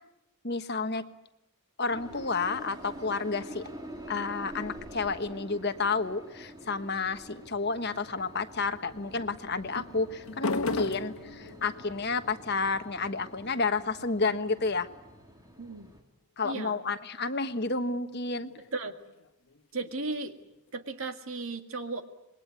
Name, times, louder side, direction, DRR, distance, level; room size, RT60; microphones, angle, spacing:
voice 1, 0.4-1.0 1.8-3.7 4.1-14.9 16.4-18.5, left 4 dB, 45° left, 9 dB, 1.3 m, -31 dB
sound 1, 1.9-16.0, equal, 15° right, 3.2 m, -47 dB
sound 2, 7.5-8.1 9.1-15.9 17.7-20.7, left 3 dB, 70° left, 1.6 m, -41 dB
voice 2, 15.6-15.9 16.4-16.8 18.7-19.0 19.7-20.4 20.7-22.0, right 3 dB, 65° right, 7 dB, 2.0 m, -35 dB
26.5 x 22.0 x 9.6 m, 0.88 s
head